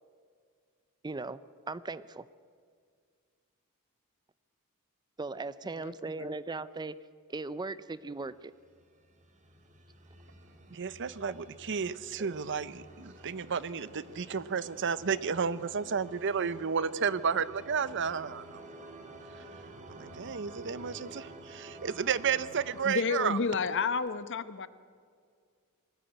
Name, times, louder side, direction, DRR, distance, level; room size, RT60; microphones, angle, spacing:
voice 1, 1.0-2.3 5.2-7.0 7.3-8.5 12.2-12.4, right 3 dB, 20° right, 16 dB, 0.5 m, -38 dB
sound 1, 8.6-22.9, right 2 dB, 35° right, 2.1 m, -50 dB
voice 2, 10.7-18.6 19.9-23.4, right 6 dB, 55° right, 17 dB, 0.7 m, -32 dB
voice 3, 22.8-24.7, left 5 dB, 55° left, 14 dB, 0.9 m, -31 dB
21.5 x 14.5 x 9.0 m, 2.1 s
head